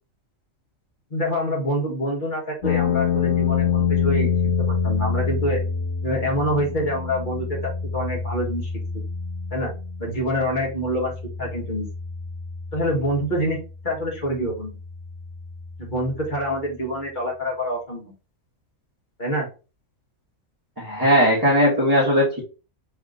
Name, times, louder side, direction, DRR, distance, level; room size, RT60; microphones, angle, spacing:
voice 1, 1.1-4.3 4.6-5.6 6.0-7.6 7.9-9.0 9.5-9.7 10.0-11.1 11.4-11.9 12.7-13.6 13.8-14.7 15.8-18.1 19.2-19.5, equal, 35° left, -2 dB, 1.8 m, -26 dB
sound 1, 2.6-16.7, left 6 dB, 70° left, 0.9 m, -27 dB
voice 2, 20.8-22.4, equal, 15° right, -7 dB, 1.5 m, -18 dB
3.5 x 3.4 x 3.8 m, 0.32 s
omnidirectional pair, 1.5 m